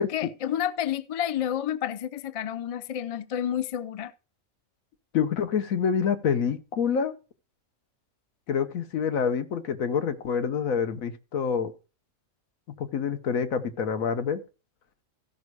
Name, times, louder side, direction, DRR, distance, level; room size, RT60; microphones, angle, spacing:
voice 1, 0.0-4.1, left 10 dB, 65° left, 0.3 m, -30 dB
voice 2, 5.1-7.1 8.5-11.7 12.8-14.4, left 6 dB, 85° left, 1.4 m, -27 dB
15.0 x 5.3 x 4.6 m
omnidirectional pair, 1.4 m